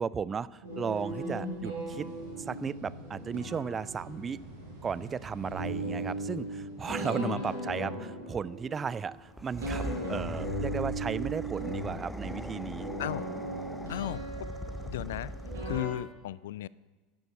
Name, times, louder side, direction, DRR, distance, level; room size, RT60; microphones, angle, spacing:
voice 1, 0.0-2.1 2.4-4.4 4.8-12.9, right 6 dB, 25° right, 20 dB, 0.5 m, -35 dB
sound 1, 0.6-15.9, right 1 dB, 75° right, 5.5 m, -38 dB
sound 2, 9.3-16.1, equal, 5° left, 1.0 m, -41 dB
voice 2, 13.9-14.2 14.9-15.3 15.7-16.7, left 14 dB, 70° left, 21 dB, 0.3 m, -35 dB
12.0 x 11.0 x 7.4 m, 1.3 s
figure-of-eight pair, 75°, 0 cm